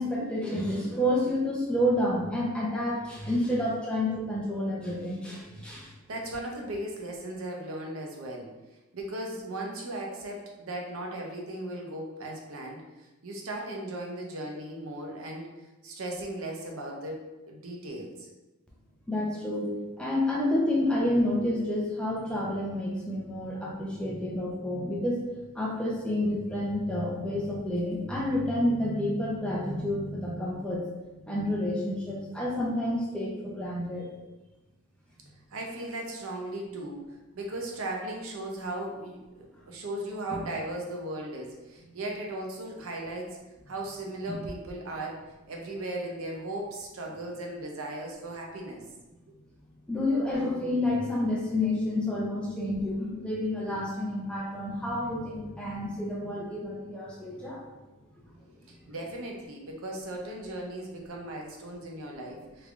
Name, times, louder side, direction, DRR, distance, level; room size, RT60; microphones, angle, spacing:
voice 1, 0.0-5.9 19.1-19.7 20.0-25.2 25.5-30.8 31.3-34.1 40.3-40.4 49.9-57.6, left 1 dB, 5° left, -4 dB, 0.5 m, -29 dB
voice 2, 5.6-8.5 8.9-15.5 15.8-18.3 35.5-43.4 43.7-48.8 58.9-62.7, right 1 dB, 80° right, 0 dB, 0.7 m, -37 dB
3.4 x 3.3 x 2.5 m, 1.1 s
head